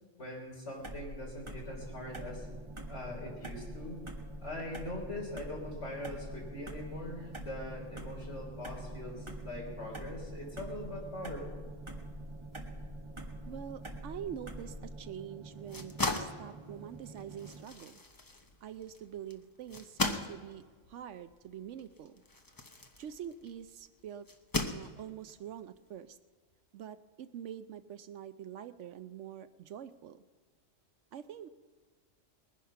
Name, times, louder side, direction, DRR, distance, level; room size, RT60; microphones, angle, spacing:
voice 1, 0.2-2.5 2.9-4.0 4.4-11.7, left 1 dB, 60° left, -1 dB, 4.0 m, -42 dB
Turn Signal Int. Persp, 0.8-15.0, equal, 25° right, 1.4 m, -45 dB
sound 1, 1.6-17.7, right 3 dB, 40° right, 0.4 m, -49 dB
voice 2, 13.5-18.0 18.6-20.6 20.9-22.2 23.0-24.3 24.7-26.2 26.7-30.2 31.1-31.5, right 9 dB, 70° right, 12 dB, 0.9 m, -45 dB
sound 2, 15.5-23.6 24.3-25.3, left 2 dB, 20° left, 0.7 m, -38 dB
20.5 x 10.0 x 5.7 m, 1.5 s
omnidirectional pair, 1.4 m